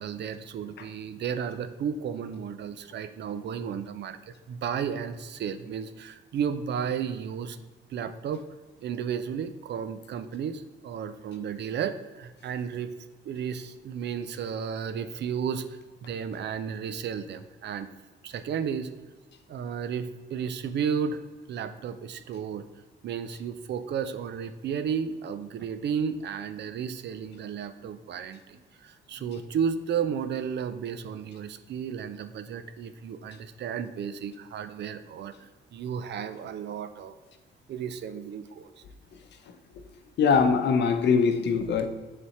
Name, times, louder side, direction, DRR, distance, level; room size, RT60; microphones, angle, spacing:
voice 1, 0.0-7.6 7.9-8.4 8.8-12.9 13.2-17.9 18.2-18.9 19.5-21.2 21.5-22.6 23.0-37.1 37.7-38.7, right 7 dB, 60° right, 11 dB, 0.5 m, -33 dB
voice 2, 40.2-41.9, left 5 dB, 60° left, 7 dB, 0.7 m, -23 dB
6.9 x 3.4 x 4.2 m, 1.3 s
cardioid pair, 90°, 20 cm